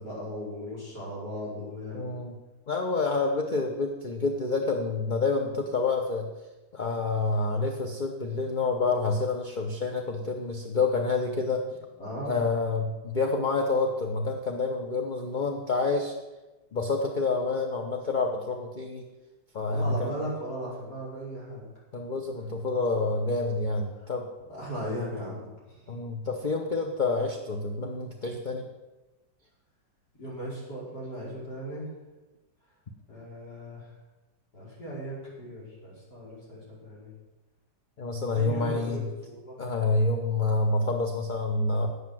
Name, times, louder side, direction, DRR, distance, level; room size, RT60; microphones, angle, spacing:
voice 1, 0.0-2.2 12.0-12.4 19.7-21.7 24.0-24.1 24.5-25.9 30.2-31.9 33.1-33.9 34.5-37.1 38.3-39.0 39.3-39.6, equal, 65° left, -6 dB, 5.4 m, -37 dB
voice 2, 1.9-2.3 2.7-6.3 6.7-11.6 12.2-16.1 16.7-19.0 19.5-20.2 21.9-24.3 25.9-28.6 38.0-39.1 39.6-41.9, left 3 dB, 35° left, 2 dB, 0.8 m, -28 dB
9.8 x 8.2 x 7.6 m, 1.1 s
omnidirectional pair, 1.9 m